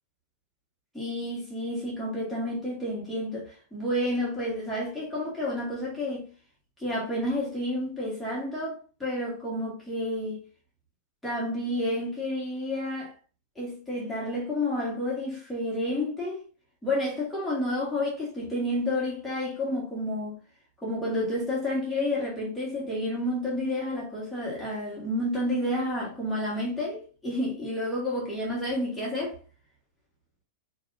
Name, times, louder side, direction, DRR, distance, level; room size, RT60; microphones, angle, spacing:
voice 1, 0.9-6.3 6.8-10.4 11.2-13.1 13.6-16.4 16.8-20.4 20.8-29.4, left 1 dB, 5° left, 2.3 m, -30 dB
4.9 x 3.5 x 2.7 m
figure-of-eight pair, 90°, 0 cm